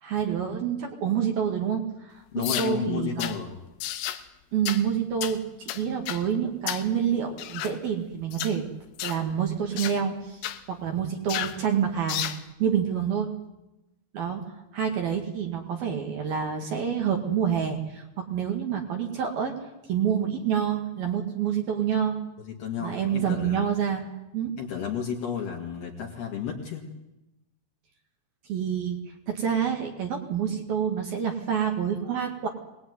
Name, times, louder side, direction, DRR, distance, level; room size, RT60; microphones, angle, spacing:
voice 1, 0.0-3.3 4.5-8.7 9.0-10.4 10.7-12.3 12.6-13.3 14.1-14.4 14.7-19.5 19.9-22.2 22.8-24.0 24.3-24.5 28.5-32.5, right 8 dB, 55° right, 2 dB, 3.5 m, -27 dB
voice 2, 2.3-3.6 22.4-23.6 24.6-26.9, left 7 dB, 60° left, -1 dB, 3.9 m, -32 dB
sound 1, 2.4-2.7 3.2-3.4 3.8-4.2 4.7-4.8 5.2-5.4 5.7-6.2 6.7-6.9 7.4-7.8 8.3-8.6 9.0-9.2 9.8-10.0 10.4-10.6 11.3-11.6 12.1-12.4, left 13 dB, 85° left, 3.9 m, -32 dB
25.0 x 20.5 x 9.6 m, 0.94 s
omnidirectional pair, 5.8 m